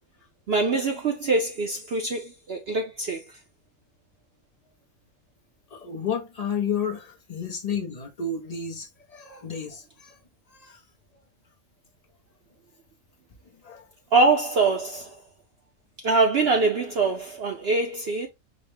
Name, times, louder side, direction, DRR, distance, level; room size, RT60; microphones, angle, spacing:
voice 1, 0.5-3.3 14.1-15.2 16.0-18.3, right 3 dB, 60° right, 0.6 m, -23 dB
voice 2, 5.7-10.2 10.5-10.8 13.6-13.9, left 6 dB, 80° left, 0.3 m, -31 dB
5.0 x 2.0 x 3.1 m
omnidirectional pair, 1.6 m